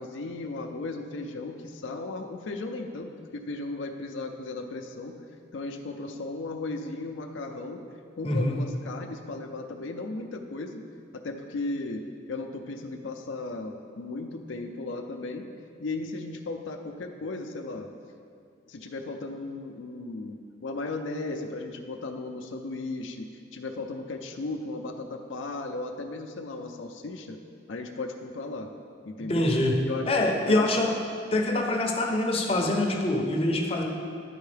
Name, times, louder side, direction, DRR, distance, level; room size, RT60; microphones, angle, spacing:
voice 1, 0.0-5.1 5.5-7.8 8.2-10.8 11.1-12.0 12.3-15.4 15.8-17.9 18.7-23.3 23.5-27.4 27.7-28.7 29.0-29.5 29.8-30.1 30.4-30.7, left 2 dB, 80° left, 4 dB, 0.5 m, -36 dB
voice 2, 8.2-8.6 29.3-29.8 30.1-30.9 31.3-33.8, left 1 dB, 30° left, 1 dB, 0.6 m, -25 dB
11.5 x 4.5 x 3.3 m, 2.3 s
head